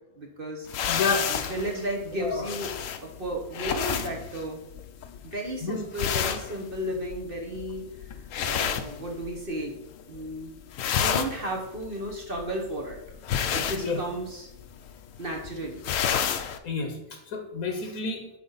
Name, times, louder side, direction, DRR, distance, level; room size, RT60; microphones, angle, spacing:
voice 1, 0.2-0.7 1.3-2.7 3.0-4.6 5.2-8.1 8.4-9.8 10.1-10.5 11.0-13.0 13.5-14.5 15.2-15.9, right 1 dB, 40° right, 1 dB, 1.2 m, -33 dB
sound 1, 0.7-9.6 9.9-10.4 10.6-16.6, left 8 dB, 70° left, 1.0 m, -31 dB
voice 2, 0.9-1.3 2.2-2.5 5.6-5.8 13.7-14.0 16.6-18.3, left 4 dB, 90° left, 4 dB, 1.4 m, -30 dB
8.4 x 5.1 x 4.0 m, 0.86 s
omnidirectional pair, 1.5 m